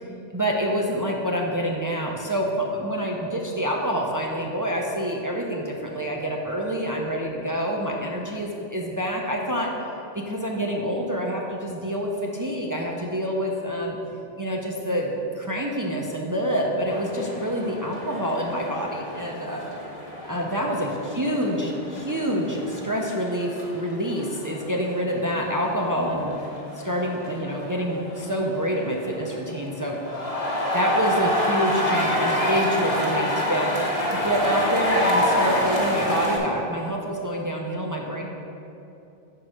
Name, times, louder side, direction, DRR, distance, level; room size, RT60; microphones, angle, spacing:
voice 1, 0.3-9.7 10.1-14.0 14.4-15.1 15.4-19.6 20.3-26.3 26.8-30.0 30.7-33.7 34.1-38.2, equal, 35° right, -1 dB, 0.3 m, -27 dB
sound 1, 16.9-36.4, left 1 dB, 35° left, 1.1 m, -28 dB
5.3 x 4.6 x 6.1 m, 2.8 s
omnidirectional pair, 1.1 m